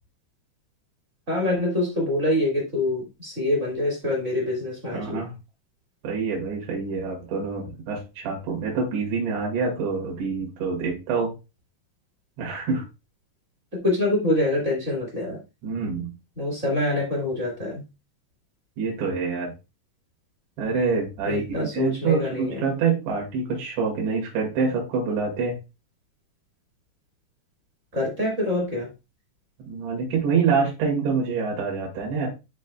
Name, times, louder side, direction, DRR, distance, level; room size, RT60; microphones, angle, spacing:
voice 1, 1.3-5.2 13.8-15.4 16.3-17.8 21.2-22.7 27.9-28.9, left 1 dB, 35° right, -2 dB, 1.2 m, -25 dB
voice 2, 4.9-5.3 6.0-11.3 12.4-12.8 15.6-16.1 18.8-19.5 20.6-21.5 21.7-25.6 29.6-32.3, right 5 dB, 75° right, -1 dB, 3.9 m, -26 dB
12.0 x 4.2 x 2.3 m, 0.27 s
omnidirectional pair, 5.2 m